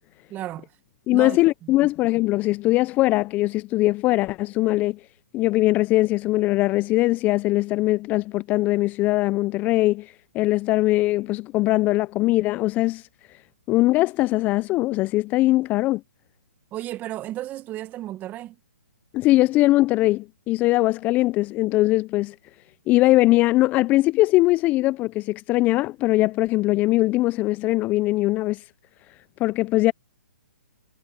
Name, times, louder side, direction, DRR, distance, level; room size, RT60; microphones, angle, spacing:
voice 1, 0.3-0.7 1.1-1.7 16.7-18.6, right 14 dB, 20° right, 1.4 m, -33 dB
voice 2, 1.1-5.0 5.3-13.1 13.7-16.0 19.1-22.4 22.9-28.6 29.4-29.9, left 18 dB, 20° left, 0.4 m, -21 dB
hypercardioid pair, 140°, 8 cm